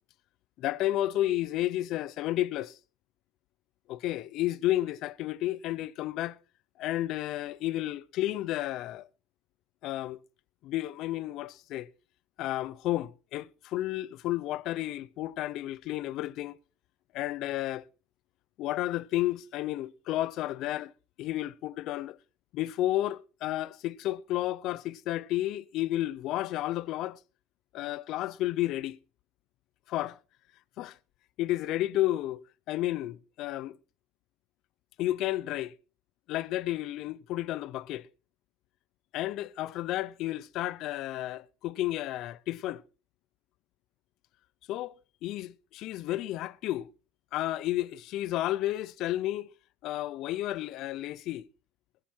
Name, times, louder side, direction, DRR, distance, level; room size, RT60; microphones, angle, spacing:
voice 1, 0.6-2.8 3.9-6.4 6.8-9.1 9.8-10.2 10.6-11.9 12.4-16.6 17.1-17.8 18.6-20.9 21.2-22.2 22.5-27.2 27.7-29.0 29.9-30.2 30.8-31.0 31.4-33.8 35.0-35.7 36.3-38.1 39.1-42.8 44.7-44.9 45.2-46.9 47.3-49.5 49.8-51.5, left 15 dB, 60° left, 0.6 m, -32 dB
20.5 x 8.6 x 4.5 m
cardioid pair, 130°, 0 cm